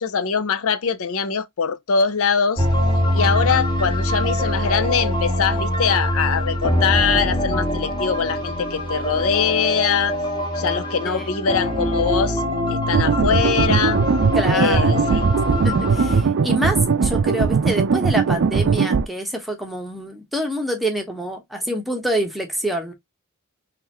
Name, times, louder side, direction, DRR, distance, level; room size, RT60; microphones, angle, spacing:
voice 1, 0.0-2.7 3.1-10.1 10.6-12.4 12.7-14.0 14.5-15.2, left 6 dB, 65° left, 0.6 m, -22 dB
sound 1, 2.6-16.2, left 1 dB, 20° left, 1.7 m, -23 dB
Trippy Sequence, 12.9-19.0, right 5 dB, 55° right, 0.4 m, -19 dB
voice 2, 14.3-14.9 15.6-22.9, equal, ahead, 1.0 m, -26 dB
3.8 x 3.2 x 3.0 m
head